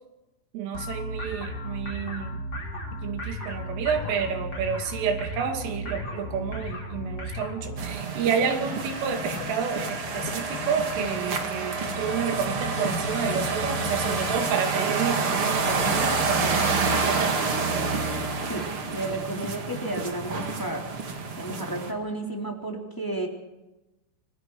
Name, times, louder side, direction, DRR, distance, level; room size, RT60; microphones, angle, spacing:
voice 1, 0.5-2.4 3.0-17.3, right 6 dB, 75° right, 5 dB, 5.0 m, -30 dB
sound 1, 0.7-7.8, equal, 25° left, 4.7 m, -35 dB
sound 2, 3.9-4.8 5.2-5.3 5.5-6.1 6.4-17.0, left 9 dB, 70° left, 3.2 m, -39 dB
sound 3, 7.8-21.9, right 4 dB, 50° right, 1.7 m, -28 dB
voice 2, 18.5-20.9 21.4-23.3, right 1 dB, 5° left, 1 dB, 2.2 m, -32 dB
28.5 x 20.5 x 4.9 m, 1.0 s
omnidirectional pair, 5.8 m